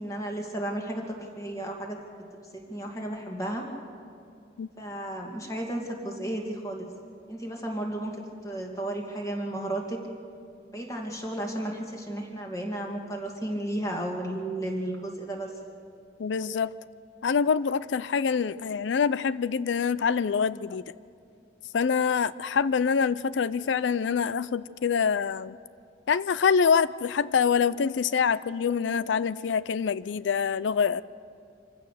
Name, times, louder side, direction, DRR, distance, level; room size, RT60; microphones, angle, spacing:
voice 1, 0.0-2.0 2.5-3.7 4.8-6.9 7.3-10.0 10.7-15.5, right 1 dB, 20° left, 1 dB, 2.3 m, -33 dB
voice 2, 16.2-16.7 17.2-20.8 21.7-25.6 26.1-31.0, left 6 dB, 75° left, 17 dB, 0.4 m, -25 dB
25.5 x 16.0 x 6.6 m, 2.4 s
head